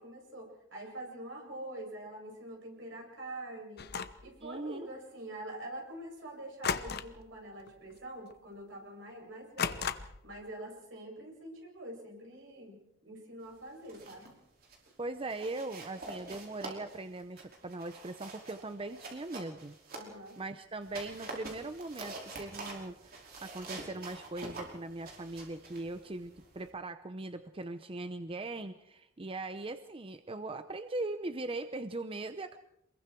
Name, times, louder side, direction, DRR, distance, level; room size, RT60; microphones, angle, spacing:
voice 1, 0.0-3.8 4.2-9.9 10.2-14.3 19.9-20.4, right 1 dB, 75° right, 1 dB, 7.7 m, -45 dB
sound 1, 3.8-4.3 6.6-7.3 7.6-7.9 8.3-8.4 9.6-10.3, left 6 dB, 55° left, 1.0 m, -35 dB
voice 2, 4.4-4.9 15.0-19.7 20.4-32.6, right 2 dB, 30° right, 10 dB, 0.8 m, -40 dB
sound 2, 13.7-14.3 14.6-14.9 15.3-20.4 20.8-26.7, right 2 dB, 50° right, 5.4 m, -46 dB
27.5 x 22.0 x 4.7 m, 0.81 s
head